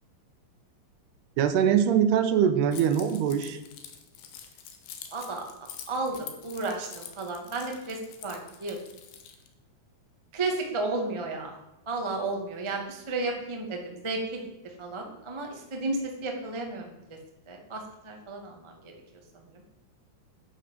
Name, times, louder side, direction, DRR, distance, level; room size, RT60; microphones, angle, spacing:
voice 1, 1.4-3.6, right 8 dB, 80° right, 9 dB, 2.9 m, -23 dB
Keys jangling, 2.7-9.5, left 9 dB, 75° left, 3.4 m, -46 dB
voice 2, 5.1-5.4 5.9-8.8 10.3-11.5 11.8-14.4 14.8-16.9 17.5-18.9, right 3 dB, 15° right, 1 dB, 1.0 m, -33 dB
10.5 x 9.9 x 7.9 m, 0.97 s
omnidirectional pair, 4.9 m